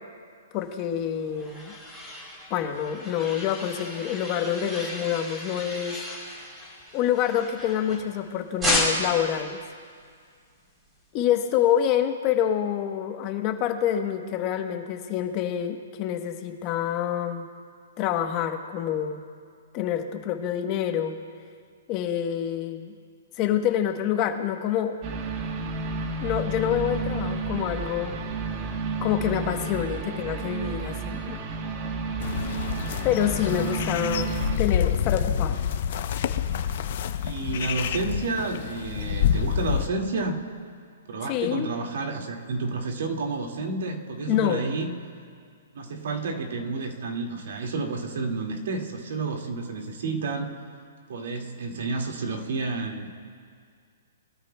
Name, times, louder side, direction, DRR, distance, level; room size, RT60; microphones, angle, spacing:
voice 1, 0.5-1.7 2.5-6.0 6.9-9.6 11.1-17.5 18.0-19.3 19.7-21.2 21.9-22.9 23.4-25.0 26.2-28.2 29.0-31.4 33.0-35.6 41.3-41.7 44.3-44.7, left 10 dB, 30° left, 6 dB, 1.0 m, -27 dB
sound 1, 0.9-8.2 8.6-9.3, left 1 dB, 10° right, 3.4 m, -32 dB
sound 2, 25.0-34.6, right 3 dB, 35° right, 1.1 m, -31 dB
sound 3, 32.2-39.9, left 8 dB, 50° left, 0.6 m, -27 dB
voice 2, 37.2-40.4 41.1-44.9 45.7-50.5 51.1-53.1, right 3 dB, 65° right, 1 dB, 2.1 m, -30 dB
22.0 x 13.0 x 2.3 m, 2.1 s
hypercardioid pair, 160°, 0 cm